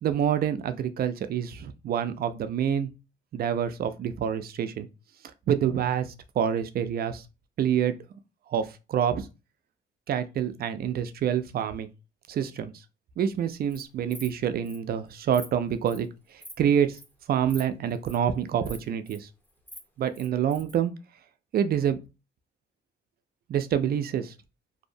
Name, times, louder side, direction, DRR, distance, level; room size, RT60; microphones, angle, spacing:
voice 1, 0.0-2.9 3.3-4.9 5.5-7.2 7.6-7.9 8.5-9.3 10.1-11.9 12.3-12.7 13.2-17.0 17.3-19.3 20.0-20.9 21.5-22.0 23.5-24.3, right 9 dB, 50° right, 0.4 m, -27 dB
Insect, 13.5-13.8 14.1-14.3 14.7-14.8 15.1-15.5 15.9-16.1 16.4-16.6 16.9-17.1 17.5-17.6 17.9-18.2 18.6-19.2 19.5-20.8, left 1 dB, 10° left, 0.7 m, -44 dB
2.6 x 2.0 x 2.5 m
cardioid pair, 90°, 20 cm